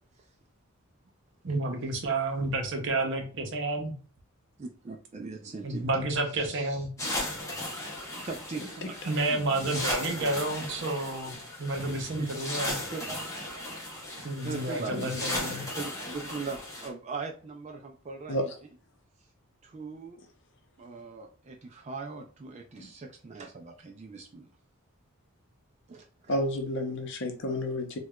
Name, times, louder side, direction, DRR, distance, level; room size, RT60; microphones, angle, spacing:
voice 1, 1.4-4.0 5.6-6.9 9.1-12.8 14.2-15.7, right 2 dB, 55° right, 0.7 m, -30 dB
voice 2, 4.6-6.0 6.3-7.1 8.2-9.8 10.2-10.3 12.1-12.3 12.9-13.2 14.4-14.9 15.3-18.5 19.6-20.2 20.8-24.5 25.9-26.4, right 4 dB, 30° right, 0.3 m, -41 dB
sound 1, 7.0-16.9, left 1 dB, 15° left, 0.7 m, -36 dB
voice 3, 15.0-15.6 18.3-18.5 22.8-22.9 26.3-28.0, left 1 dB, 55° left, 0.6 m, -31 dB
4.5 x 2.2 x 2.3 m
head